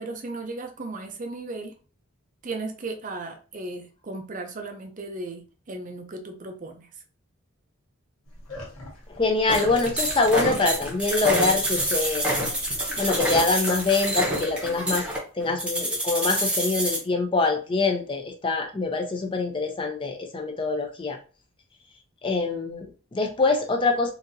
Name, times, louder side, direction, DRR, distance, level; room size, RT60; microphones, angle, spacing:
voice 1, 0.0-1.7 2.4-7.0, right 2 dB, 35° right, 5 dB, 0.5 m, -36 dB
sound 1, 8.3-13.3, left 1 dB, 90° left, 1.2 m, -43 dB
voice 2, 9.2-12.3 13.0-15.1 15.3-21.2 22.2-24.1, left 3 dB, 25° left, 3 dB, 0.4 m, -24 dB
sound 2, 9.5-17.0, right 1 dB, 5° right, 0.8 m, -27 dB
3.9 x 2.7 x 2.6 m, 0.36 s
head